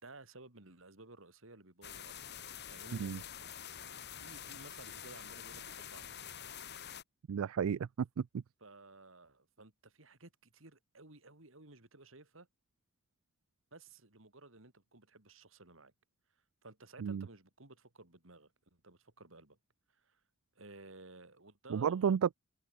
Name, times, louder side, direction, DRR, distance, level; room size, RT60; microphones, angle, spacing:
voice 1, 0.0-2.4 2.7-3.4 4.2-6.2 8.6-12.5 13.7-15.9 16.6-19.6 19.9-20.2 20.5-22.2, right 2 dB, 70° right, 3.3 m, -56 dB
sound 1, 1.8-7.0, left 9 dB, 50° left, 3.4 m, -47 dB
voice 2, 7.3-8.4 17.0-17.3 21.7-22.3, right 7 dB, 85° right, 0.4 m, -32 dB
head